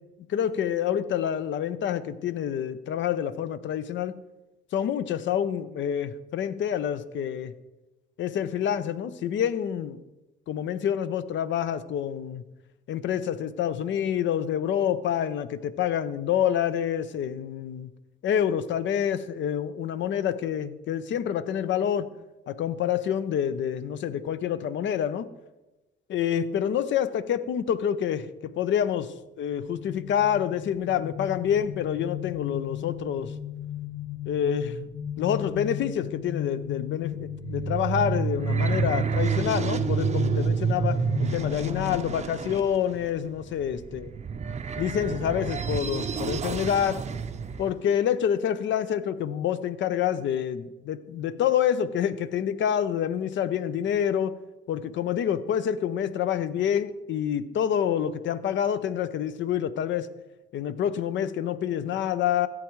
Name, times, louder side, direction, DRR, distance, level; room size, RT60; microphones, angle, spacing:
voice 1, 0.3-4.2 4.7-7.5 8.2-10.0 10.5-12.4 12.9-17.9 18.2-22.1 22.5-25.3 26.1-33.3 34.3-34.9 35.2-44.1 44.8-47.0 47.6-54.4 54.7-60.1 60.5-62.5, left 9 dB, 70° left, 14 dB, 0.6 m, -27 dB
sound 1, 29.6-42.3, left 11 dB, 30° left, 0.6 m, -36 dB
sound 2, 37.2-47.7, right 6 dB, 35° right, 0.5 m, -29 dB
13.5 x 8.8 x 3.1 m, 1.0 s
cardioid pair, 90°, 20 cm